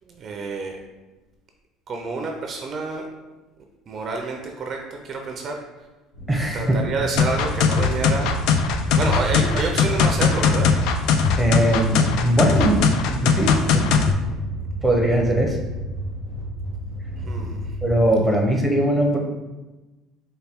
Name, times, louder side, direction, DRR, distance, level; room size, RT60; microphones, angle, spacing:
voice 1, 0.1-0.8 1.9-3.1 3.9-5.6 6.5-8.3 9.0-10.7 17.2-17.7, right 3 dB, 40° right, 2 dB, 0.5 m, -28 dB
sound 1, 6.1-17.9, equal, 90° left, 1.3 m, -32 dB
voice 2, 6.3-6.8 11.4-13.9 14.8-15.6 17.8-19.2, right 1 dB, 5° right, 0 dB, 0.7 m, -20 dB
sound 2, 7.2-14.1, left 6 dB, 70° left, 0.3 m, -20 dB
4.2 x 2.2 x 3.5 m, 1.1 s
cardioid pair, 115°, 0 cm